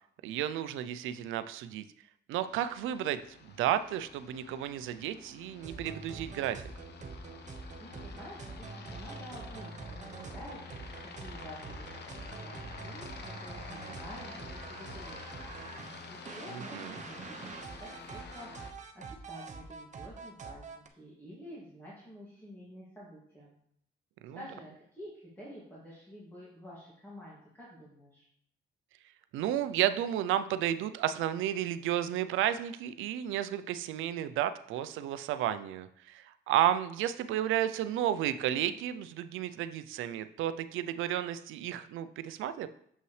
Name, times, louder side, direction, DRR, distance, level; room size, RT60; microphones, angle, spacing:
voice 1, 0.2-1.8 2.3-6.6 16.5-16.9 24.2-24.4 29.3-42.7, right 11 dB, 90° right, 12 dB, 0.5 m, -32 dB
Aircraft, 2.4-18.7, left 4 dB, 60° left, 0.8 m, -49 dB
sound 1, 5.6-20.9, right 4 dB, 35° right, 0.8 m, -45 dB
voice 2, 7.8-11.9 12.2-23.5 24.3-28.3, equal, 10° left, -7 dB, 2.2 m, -50 dB
7.4 x 5.5 x 3.2 m, 0.67 s
cardioid pair, 90°, 20 cm